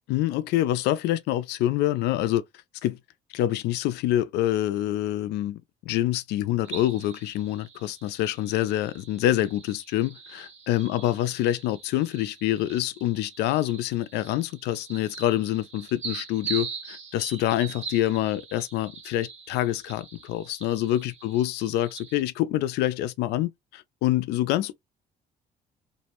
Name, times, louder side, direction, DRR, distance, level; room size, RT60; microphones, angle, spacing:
voice 1, 0.1-2.4 2.8-3.0 3.3-24.7, left 13 dB, 80° left, 0.4 m, -26 dB
sound 1, 6.6-22.2, right 5 dB, 40° right, 0.9 m, -42 dB
2.6 x 2.0 x 2.9 m
cardioid pair, 110°, 17 cm